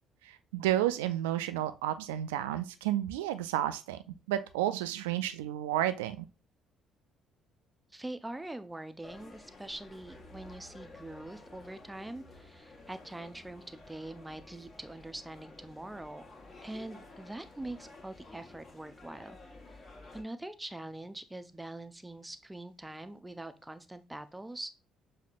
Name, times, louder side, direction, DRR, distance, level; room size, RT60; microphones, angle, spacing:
voice 1, 0.3-6.3, right 12 dB, 70° right, 12 dB, 0.3 m, -31 dB
voice 2, 7.9-16.2 16.6-19.4 19.7-19.8 20.1-24.7, right 1 dB, 10° right, 11 dB, 0.5 m, -43 dB
sound 1, 9.0-20.2, left 2 dB, 35° left, 1.1 m, -52 dB
6.5 x 2.8 x 2.5 m, 0.32 s
figure-of-eight pair, 50°, 0 cm